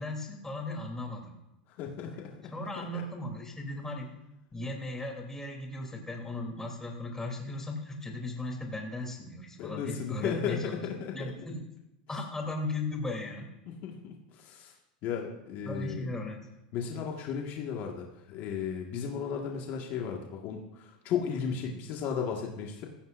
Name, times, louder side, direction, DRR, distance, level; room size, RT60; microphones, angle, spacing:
voice 1, 0.0-1.3 2.5-4.1 4.5-10.8 11.1-11.6 12.1-13.5 15.6-16.4, left 2 dB, 10° left, 0 dB, 3.2 m, -37 dB
voice 2, 1.8-3.0 9.6-11.3 13.7-14.7 15.0-16.1 16.7-22.9, left 7 dB, 50° left, 0 dB, 1.8 m, -35 dB
16.5 x 15.0 x 2.6 m, 0.90 s
supercardioid pair, 115°, 4 cm